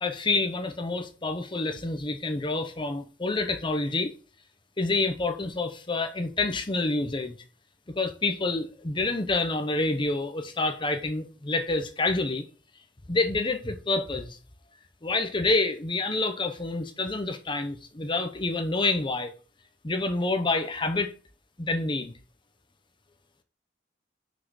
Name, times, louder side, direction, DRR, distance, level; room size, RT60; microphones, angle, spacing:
voice 1, 0.0-4.1 4.8-7.4 8.0-12.4 13.1-14.4 15.0-19.3 19.8-21.1 21.6-22.1, left 3 dB, 25° left, 0.9 m, -28 dB
6.1 x 5.6 x 6.4 m
head